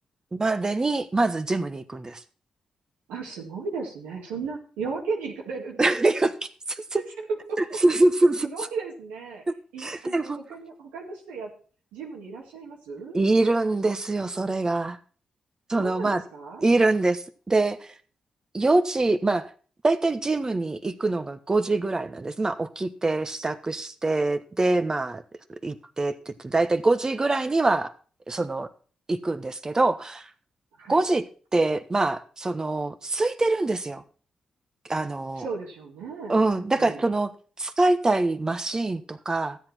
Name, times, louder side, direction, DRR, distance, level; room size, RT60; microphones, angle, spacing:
voice 1, 0.3-2.2 5.8-6.3 6.7-7.0 7.6-8.7 9.5-10.4 13.1-15.0 15.7-16.2 16.6-17.9 18.5-19.5 19.8-25.2 25.6-27.9 28.3-28.7 29.1-30.3 30.9-31.2 31.5-34.0 34.9-35.5 36.3-37.3 37.6-39.6, right 2 dB, 35° right, 10 dB, 1.3 m, -24 dB
voice 2, 3.1-5.8 7.2-7.6 8.4-9.4 9.7-11.5 11.9-13.2 15.8-16.6 30.8-31.0 35.4-36.4 36.8-37.1, right 4 dB, 90° right, -1 dB, 2.1 m, -35 dB
13.5 x 8.1 x 4.5 m, 0.41 s
supercardioid pair, 40°, 2 cm